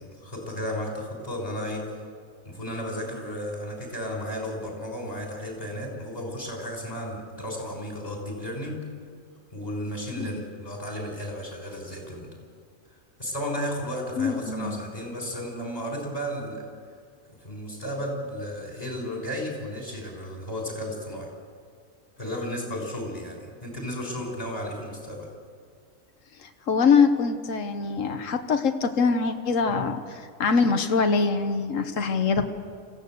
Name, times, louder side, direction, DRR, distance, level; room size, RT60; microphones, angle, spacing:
voice 1, 0.0-1.9 2.4-8.8 9.5-12.3 13.2-16.7 17.3-21.3 22.2-25.3 29.7-29.8, equal, 30° left, 0 dB, 6.0 m, -33 dB
voice 2, 14.2-14.8 26.4-32.4, left 5 dB, 80° left, 7 dB, 1.5 m, -24 dB
25.5 x 16.0 x 8.0 m, 2.1 s
omnidirectional pair, 1.3 m